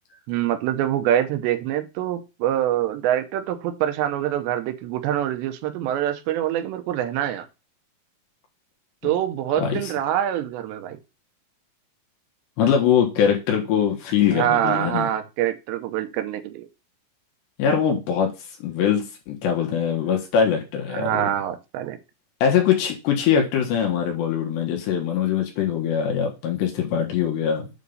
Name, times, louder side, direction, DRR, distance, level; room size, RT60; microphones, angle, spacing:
voice 1, 0.3-7.5 9.0-11.0 14.3-16.7 20.9-22.0, right 11 dB, 80° right, 8 dB, 3.1 m, -25 dB
voice 2, 9.6-9.9 12.6-15.1 17.6-18.3 18.6-21.2 22.4-27.7, left 8 dB, 75° left, 2 dB, 3.6 m, -22 dB
8.4 x 3.6 x 5.5 m, 0.28 s
omnidirectional pair, 5.1 m